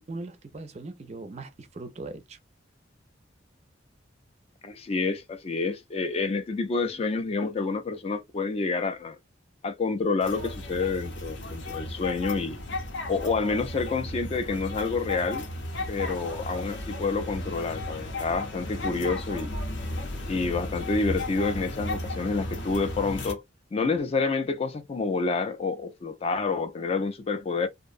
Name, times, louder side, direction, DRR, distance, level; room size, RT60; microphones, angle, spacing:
voice 1, 0.0-2.4, right 2 dB, 35° right, 0.4 m, -40 dB
voice 2, 4.6-9.2 9.6-12.6 13.1-15.5 15.9-19.5 20.3-23.4 23.7-27.7, left 4 dB, 30° left, 0.3 m, -28 dB
sound 1, 10.2-23.3, left 1 dB, 70° left, 0.6 m, -35 dB
2.5 x 2.1 x 2.4 m
head